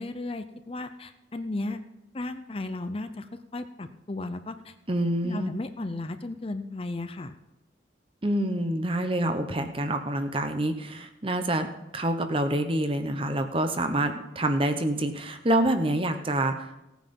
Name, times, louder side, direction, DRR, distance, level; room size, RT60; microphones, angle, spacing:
voice 1, 0.0-1.8 2.1-4.7 5.2-7.4, left 2 dB, 30° left, 9 dB, 0.6 m, -35 dB
voice 2, 4.9-5.5 8.2-11.7 11.9-16.8, right 1 dB, 30° right, 7 dB, 1.0 m, -27 dB
17.5 x 9.2 x 5.4 m, 0.94 s
head